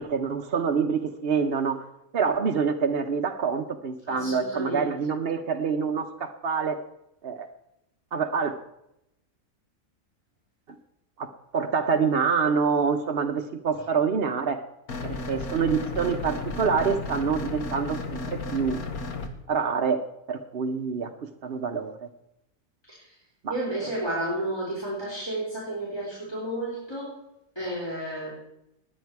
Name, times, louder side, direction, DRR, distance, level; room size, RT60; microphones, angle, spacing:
voice 1, 0.0-1.8 2.1-6.8 7.2-7.5 8.1-8.6 11.2-14.6 15.0-18.8 19.5-20.0 20.3-21.1 21.4-22.1 23.4-23.6, right 6 dB, 50° right, 4 dB, 0.9 m, -26 dB
voice 2, 4.0-4.9 22.9-23.1 23.5-27.2 27.6-28.3, right 1 dB, 15° left, -6 dB, 4.0 m, -32 dB
sound 1, 14.9-19.3, left 3 dB, 85° left, 1.8 m, -34 dB
20.0 x 8.8 x 4.7 m, 0.85 s
omnidirectional pair, 1.5 m